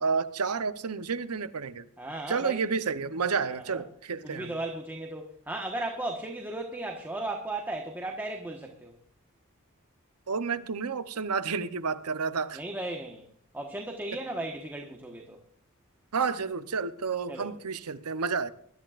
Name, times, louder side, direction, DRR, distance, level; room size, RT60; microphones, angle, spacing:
voice 1, 0.0-1.9 2.3-4.5 10.3-12.6 16.1-18.5, right 5 dB, 85° right, 0.9 m, -30 dB
voice 2, 2.0-2.6 3.4-3.8 4.2-8.9 12.5-13.2 13.5-15.4 17.3-17.5, right 2 dB, 10° right, 1.3 m, -36 dB
24.0 x 13.0 x 2.5 m
head